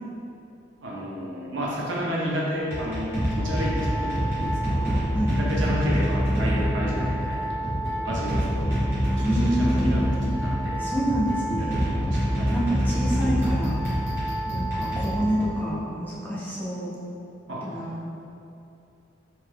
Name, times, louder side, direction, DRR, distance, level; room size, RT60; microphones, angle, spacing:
voice 1, 0.8-8.8 9.1-10.8 11.6-12.6 17.5-17.9, equal, 80° right, -4 dB, 0.6 m, -32 dB
sound 1, 2.7-15.8, equal, 15° right, 0.9 m, -26 dB
voice 2, 9.2-9.9 10.8-11.7 12.5-13.8 14.4-16.9 17.6-18.0, equal, 10° left, -8 dB, 0.4 m, -28 dB
2.8 x 2.2 x 3.2 m, 2.7 s
head